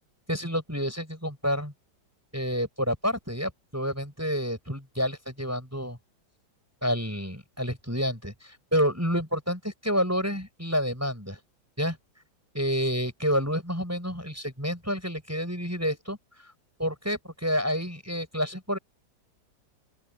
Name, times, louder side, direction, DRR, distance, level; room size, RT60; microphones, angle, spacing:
voice 1, 0.3-1.7 2.3-6.0 6.8-11.4 11.8-12.0 12.5-16.2 16.4-16.5 16.8-18.8, equal, 10° right, 6.3 m, -29 dB
open air
omnidirectional pair, 2.0 m